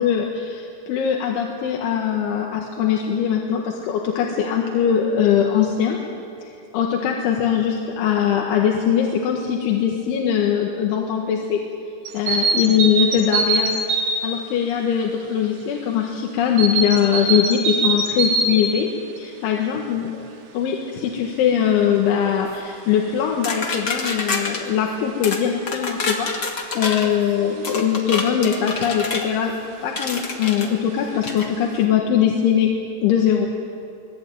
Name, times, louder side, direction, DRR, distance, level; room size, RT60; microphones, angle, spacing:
voice 1, 0.0-6.0 6.7-11.6 12.1-13.7 14.2-18.9 19.2-20.3 20.5-29.5 29.8-32.7 33.0-33.5, left 8 dB, 75° left, 0 dB, 3.9 m, -21 dB
sound 1, 12.1-14.3 16.6-18.6, right 3 dB, 75° right, 4.3 m, -22 dB
sound 2, 23.4-24.6 25.2-25.4 25.7-27.1 27.6-29.3 30.0-30.7 31.2-31.5, left 3 dB, 55° left, 1.1 m, -27 dB
25.0 x 20.5 x 9.3 m, 2.6 s
omnidirectional pair, 5.7 m